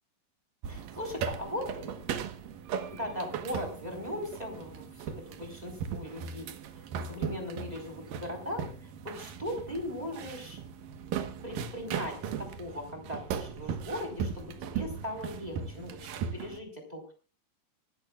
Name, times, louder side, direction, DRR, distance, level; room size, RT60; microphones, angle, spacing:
sound 1, 0.6-16.6, right 7 dB, 80° right, 2.9 m, -38 dB
voice 1, 0.7-2.0 2.8-6.8 7.1-10.6 11.4-17.1, left 1 dB, 10° right, 3 dB, 4.1 m, -39 dB
24.5 x 13.0 x 2.4 m, 0.35 s
omnidirectional pair, 3.9 m